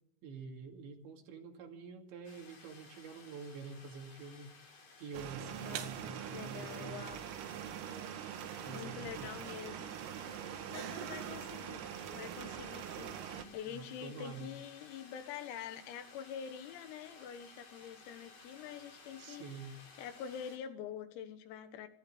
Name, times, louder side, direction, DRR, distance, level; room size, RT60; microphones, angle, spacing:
voice 1, 0.2-4.5 5.0-7.1 8.6-9.3 13.7-14.5 19.2-19.8, right 5 dB, 65° right, 3 dB, 4.4 m, -47 dB
sound 1, 2.2-20.6, left 4 dB, 45° left, 4.8 m, -57 dB
sound 2, 5.1-13.4, right 10 dB, 80° right, 4.2 m, -43 dB
voice 2, 5.6-7.2 8.7-9.9 10.4-11.8 12.1-19.5 20.0-21.9, left 8 dB, 85° left, 9 dB, 4.3 m, -46 dB
26.0 x 13.0 x 8.7 m, 0.79 s
omnidirectional pair, 6.0 m